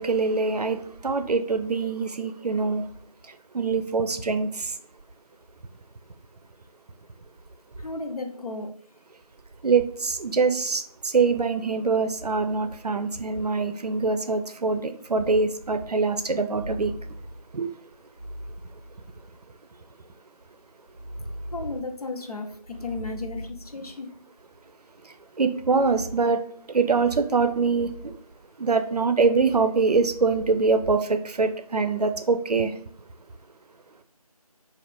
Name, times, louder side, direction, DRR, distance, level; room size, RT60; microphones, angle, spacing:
voice 1, 0.0-2.9 3.2-4.8 9.6-16.9 17.5-17.7 25.0-26.4 26.7-28.1 28.6-32.8, right 4 dB, 85° right, 0.5 m, -24 dB
voice 2, 7.8-8.7 21.5-24.1, left 3 dB, 75° left, 0.7 m, -34 dB
sound 1, 15.0-15.1 16.5-17.5 18.2-19.3 20.9-21.9 22.6-23.8 25.5-26.3 27.2-28.2 29.9-30.4, equal, 25° right, 0.7 m, -40 dB
2.5 x 2.4 x 3.5 m
figure-of-eight pair, 170°, 20 cm